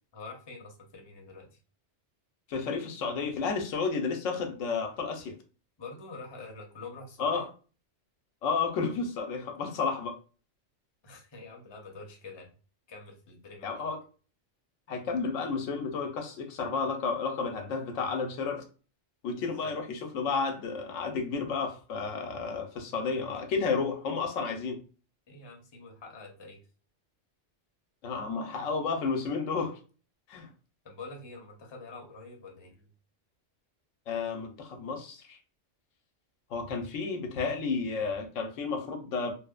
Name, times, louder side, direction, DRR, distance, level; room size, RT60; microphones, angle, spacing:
voice 1, 0.1-1.6 5.8-7.5 11.0-12.5 12.9-13.9 19.4-19.7 25.3-26.6 30.8-32.9, left 3 dB, 30° left, 0.5 m, -46 dB
voice 2, 2.5-5.4 7.2-7.5 8.4-10.2 13.6-14.0 14.9-18.7 19.2-24.8 28.0-29.8 30.3-30.5 34.1-35.4 36.5-39.3, left 4 dB, 90° left, 1.0 m, -32 dB
3.0 x 2.0 x 2.3 m
omnidirectional pair, 1.3 m